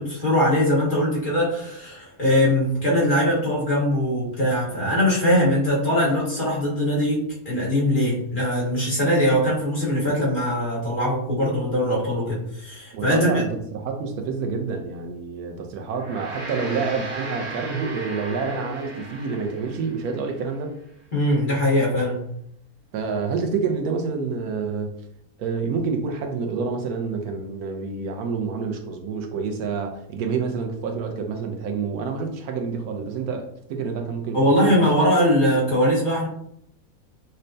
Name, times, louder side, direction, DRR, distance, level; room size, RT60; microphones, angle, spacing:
voice 1, 0.0-13.4 21.1-22.2 34.3-36.3, equal, 35° left, -6 dB, 1.2 m, -21 dB
voice 2, 12.9-20.7 22.9-24.9 25.4-34.9, right 5 dB, 90° right, 4 dB, 1.1 m, -28 dB
Gong, 15.8-20.5, right 2 dB, 60° right, 1.3 m, -36 dB
5.5 x 2.1 x 2.6 m, 0.73 s
omnidirectional pair, 1.6 m